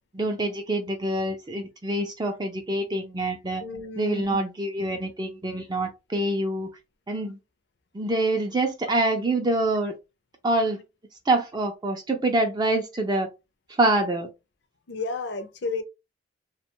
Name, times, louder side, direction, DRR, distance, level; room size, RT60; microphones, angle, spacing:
voice 1, 0.1-3.6 4.0-6.7 7.1-7.4 7.9-9.9 10.4-10.8 11.3-13.3 13.7-14.3, right 2 dB, 20° right, 0.3 m, -25 dB
voice 2, 3.6-4.3 14.9-15.8, left 3 dB, 60° left, 0.5 m, -32 dB
2.8 x 2.2 x 2.9 m
head